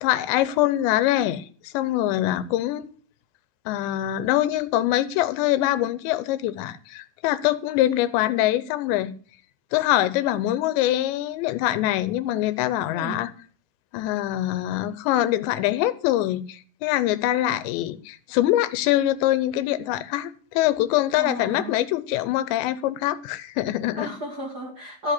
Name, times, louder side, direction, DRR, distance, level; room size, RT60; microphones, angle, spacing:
voice 1, 0.0-2.8 3.7-9.1 9.7-13.3 13.9-24.2, left 14 dB, 85° left, 3.1 m, -24 dB
voice 2, 21.2-21.7 24.0-25.1, left 1 dB, 70° right, 0.9 m, -32 dB
15.0 x 5.5 x 8.4 m
omnidirectional pair, 5.0 m